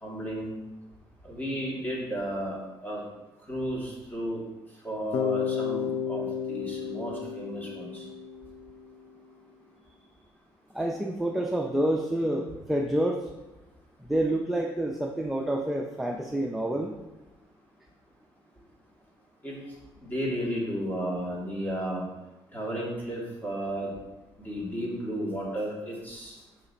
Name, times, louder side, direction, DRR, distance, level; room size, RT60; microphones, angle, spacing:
voice 1, 0.0-0.5 1.3-2.6 2.8-3.0 3.5-4.4 4.8-8.0 19.4-19.5 20.0-22.0 22.5-23.9 24.4-26.3, equal, 20° left, -4 dB, 2.4 m, -33 dB
Bass guitar, 5.1-9.1, left 7 dB, 70° left, 0.4 m, -32 dB
voice 2, 10.7-13.3 14.0-16.9, right 1 dB, ahead, 1 dB, 0.5 m, -28 dB
5.8 x 5.7 x 4.1 m, 1.0 s
cardioid pair, 110°, 10 cm